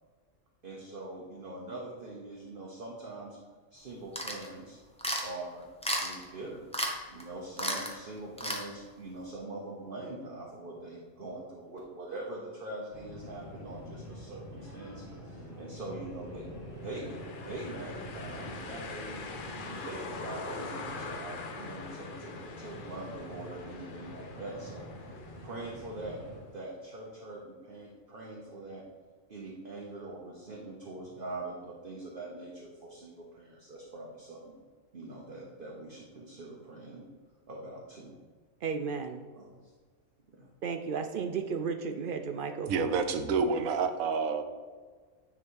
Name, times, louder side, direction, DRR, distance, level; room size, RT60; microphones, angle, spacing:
voice 1, 0.6-3.4 3.7-4.8 5.2-5.7 6.0-6.6 7.1-16.4 16.7-24.9 25.4-26.2 26.5-28.8 29.3-34.6 34.9-37.0 37.5-38.2 39.3-39.7 40.4-40.5, right 2 dB, 45° right, -3 dB, 1.1 m, -43 dB
sound 1, 4.2-4.5 5.0-5.3 5.8-6.2 6.7-6.9 7.2-7.3 7.6-7.9 8.4-8.6, equal, 5° left, 0.7 m, -32 dB
sound 2, 12.9-26.4, equal, 70° left, 3.0 m, -46 dB
sound 3, 16.8-26.6, left 4 dB, 50° left, 0.7 m, -44 dB
voice 2, 38.6-39.2 40.6-42.9, right 5 dB, 70° right, 6 dB, 0.5 m, -34 dB
voice 3, 42.7-44.4, right 5 dB, 85° right, 8 dB, 1.1 m, -28 dB
9.7 x 3.7 x 4.6 m, 1.5 s
omnidirectional pair, 1.4 m